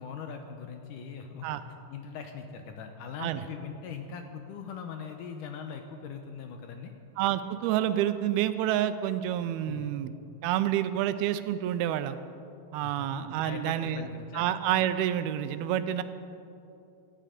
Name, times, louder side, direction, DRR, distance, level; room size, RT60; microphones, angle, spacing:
voice 1, 0.0-1.6 1.9-6.9 9.7-9.9 12.8-14.4, left 6 dB, 75° left, 5 dB, 2.0 m, -41 dB
voice 2, 7.2-10.1 10.4-12.2 12.7-14.1 14.3-16.0, right 11 dB, 85° right, 11 dB, 2.6 m, -28 dB
17.5 x 13.0 x 5.1 m, 2.8 s
omnidirectional pair, 4.4 m